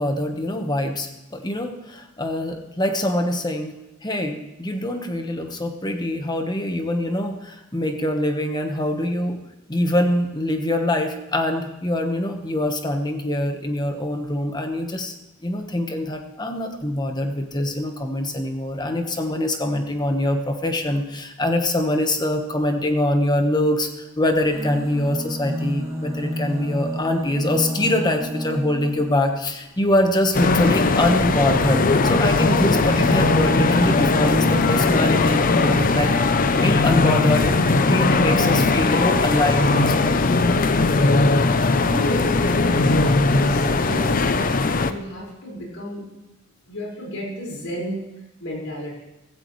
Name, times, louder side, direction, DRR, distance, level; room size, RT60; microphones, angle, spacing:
voice 1, 0.0-3.7 4.0-9.4 9.7-15.1 15.4-36.1 36.5-40.3, left 1 dB, 20° left, 5 dB, 1.2 m, -24 dB
sound 1, 24.4-29.2 30.9-36.3 37.3-37.4 37.6-37.7, left 1 dB, 15° right, 2.1 m, -28 dB
sound 2, 30.3-44.9, left 3 dB, 45° left, 0.6 m, -19 dB
voice 2, 41.8-44.4 44.7-46.1 46.7-48.1 48.4-49.0, equal, 90° left, -3 dB, 5.1 m, -32 dB
15.5 x 15.5 x 3.2 m, 0.99 s
head